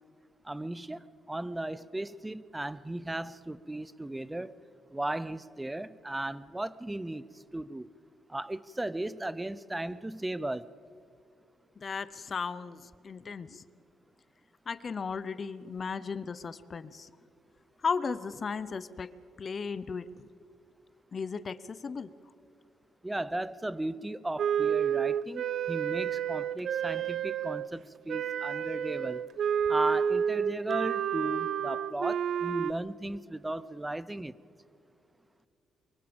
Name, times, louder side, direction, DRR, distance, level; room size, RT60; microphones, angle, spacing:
voice 1, 0.4-4.5 4.9-7.3 7.5-7.9 8.3-10.7 23.0-29.2 29.7-34.3, right 1 dB, 10° right, 0.6 m, -36 dB
voice 2, 11.8-12.8 13.0-13.6 14.7-17.1 17.8-19.1 19.4-20.1 21.1-22.1, left 5 dB, 40° left, 0.7 m, -35 dB
Wind instrument woodwind instrument, 24.4-27.7 28.1-32.7, right 8 dB, 60° right, 0.4 m, -30 dB
23.5 x 23.0 x 5.2 m
cardioid pair, 90°, 0 cm